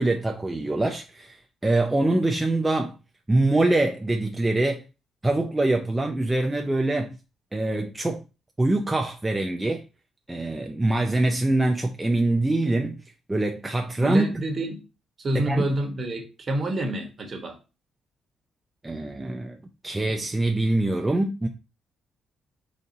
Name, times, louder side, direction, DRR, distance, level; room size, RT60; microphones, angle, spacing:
voice 1, 0.0-3.0 3.3-4.8 5.2-7.1 7.5-8.2 8.6-9.8 10.3-13.0 13.3-14.3 15.3-15.7 18.8-19.6 19.8-21.5, right 2 dB, 15° right, 0.5 m, -24 dB
voice 2, 14.0-14.8 15.2-17.6, right 1 dB, 40° right, 1.2 m, -28 dB
4.0 x 2.7 x 3.9 m
cardioid pair, 90°, 0 cm